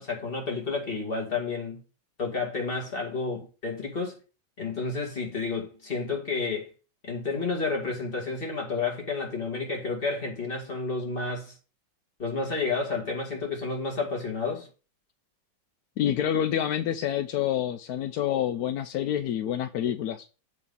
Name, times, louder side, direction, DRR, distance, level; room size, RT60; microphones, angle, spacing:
voice 1, 0.0-1.8 2.2-4.2 4.6-6.7 7.0-11.6 12.2-14.7, left 4 dB, 30° left, 2.3 m, -31 dB
voice 2, 16.0-20.3, left 10 dB, 75° left, 0.8 m, -27 dB
8.1 x 3.6 x 5.4 m
omnidirectional pair, 2.2 m